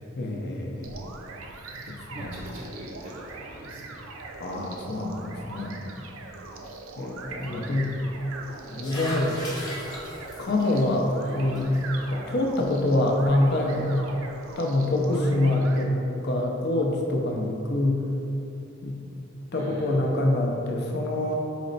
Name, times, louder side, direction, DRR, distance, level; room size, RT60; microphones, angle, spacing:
voice 1, 0.2-0.9 1.9-2.0 2.2-2.3 4.4-5.8 7.0-7.9 8.7-9.4 10.4-11.1 11.4-11.7 12.1-13.9 14.6-16.0 16.2-18.0 18.8-19.0 19.5-21.3, left 1 dB, 55° left, 1 dB, 0.5 m, -25 dB
sound 1, 0.8-15.8, right 3 dB, 90° right, 0.5 m, -41 dB
voice 2, 1.8-4.1 7.4-7.6 11.2-11.5 19.5-20.1, equal, 30° right, -5 dB, 0.5 m, -43 dB
sound 2, 8.4-14.0, equal, 20° left, 0.9 m, -40 dB
4.1 x 3.2 x 4.0 m, 3.0 s
head